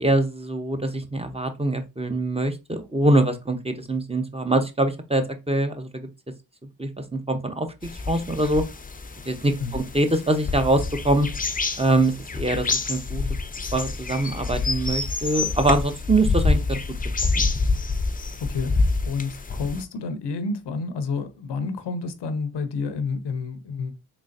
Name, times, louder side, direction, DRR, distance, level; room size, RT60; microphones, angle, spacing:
voice 1, 0.0-6.1 6.8-7.7 7.9-8.6 9.3-11.3 11.8-13.2 13.7-16.8 17.3-17.5, right 2 dB, 15° right, 0.7 m, -24 dB
sound 1, 7.8-19.8, left 3 dB, 20° left, 0.5 m, -27 dB
voice 2, 18.4-24.0, left 4 dB, 90° left, 0.6 m, -30 dB
3.9 x 3.1 x 2.5 m
cardioid pair, 45°, 40 cm